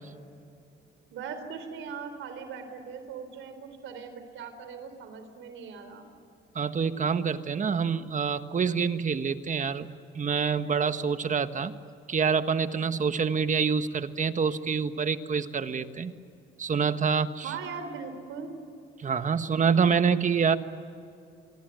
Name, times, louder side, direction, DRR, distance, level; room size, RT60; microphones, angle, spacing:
voice 1, 1.1-6.1 17.4-18.5, right 6 dB, 85° right, 8 dB, 4.1 m, -40 dB
voice 2, 6.5-9.9 10.1-11.7 12.1-16.1 16.6-17.5 19.0-20.6, right 6 dB, 40° right, 10 dB, 1.5 m, -26 dB
26.5 x 24.0 x 9.4 m, 2.5 s
cardioid pair, 90°, 20 cm